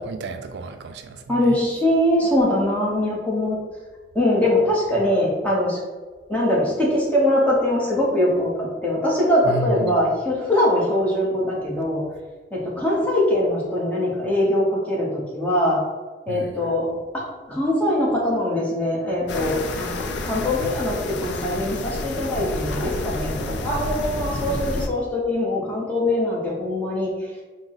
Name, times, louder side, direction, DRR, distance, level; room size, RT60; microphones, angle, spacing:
voice 1, 0.0-1.6 9.4-9.9 16.3-16.7, right 2 dB, 70° right, 7 dB, 0.3 m, -31 dB
voice 2, 1.3-3.6 4.1-5.8 6.3-12.0 12.5-15.8 16.3-16.9 17.1-17.2 17.5-23.3 23.6-27.1, left 1 dB, 10° left, -5 dB, 0.9 m, -22 dB
sound 1, 19.3-24.9, left 2 dB, 80° left, 0.4 m, -29 dB
4.7 x 2.0 x 3.8 m, 1.3 s
head